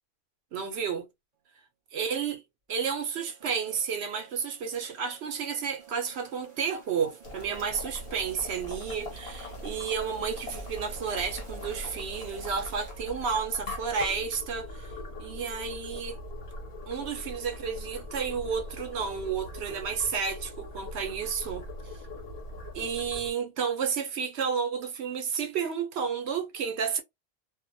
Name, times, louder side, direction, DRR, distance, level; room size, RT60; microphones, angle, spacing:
voice 1, 0.5-1.1 1.9-2.4 2.7-14.9 15.2-16.2 16.9-21.7 22.7-27.0, right 6 dB, 85° right, 0.9 m, -31 dB
sound 1, 2.7-13.4, right 6 dB, 40° right, 1.0 m, -52 dB
Boiling, 7.2-23.3, left 1 dB, 70° left, 1.2 m, -41 dB
2.4 x 2.1 x 2.6 m
omnidirectional pair, 1.1 m